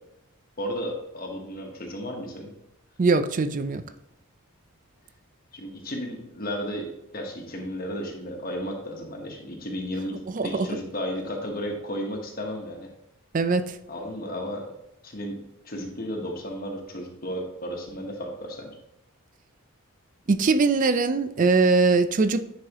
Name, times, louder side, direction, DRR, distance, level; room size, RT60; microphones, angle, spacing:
voice 1, 0.6-2.5 5.5-12.9 13.9-14.7 15.0-15.4 15.6-18.8, equal, 40° left, 1 dB, 1.2 m, -33 dB
voice 2, 3.0-3.8 10.3-10.7 13.3-13.8 20.3-22.5, right 4 dB, 35° right, 11 dB, 0.4 m, -21 dB
9.9 x 4.8 x 3.0 m, 0.86 s
head